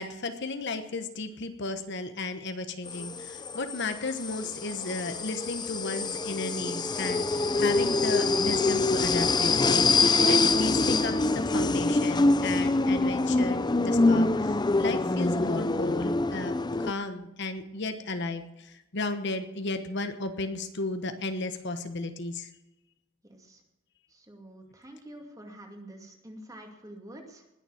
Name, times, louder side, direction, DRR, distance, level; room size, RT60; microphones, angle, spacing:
voice 1, 0.0-22.5, left 3 dB, 55° left, 8 dB, 1.1 m, -34 dB
sound 1, 2.9-16.9, left 3 dB, 20° left, 0.5 m, -25 dB
voice 2, 23.2-23.6 24.1-27.4, right 1 dB, 15° right, 2 dB, 2.3 m, -47 dB
20.0 x 7.1 x 7.2 m, 0.92 s
head